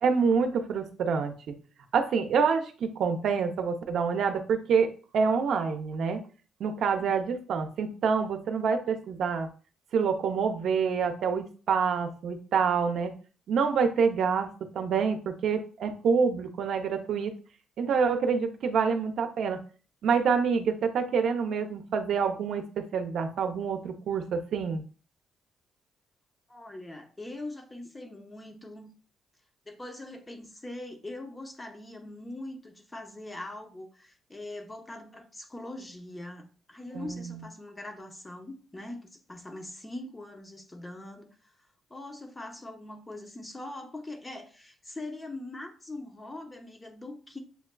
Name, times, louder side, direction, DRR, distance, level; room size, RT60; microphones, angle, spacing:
voice 1, 0.0-1.3 1.9-6.2 6.6-9.5 9.9-13.1 13.5-14.5 14.7-17.3 17.8-19.6 20.0-24.8 36.9-37.4, right 6 dB, 70° right, 0.5 m, -27 dB
voice 2, 7.0-7.4 26.5-28.9 29.7-41.3 41.9-47.4, left 2 dB, 20° left, 0.8 m, -42 dB
6.8 x 2.3 x 2.2 m
cardioid pair, 90°, 0 cm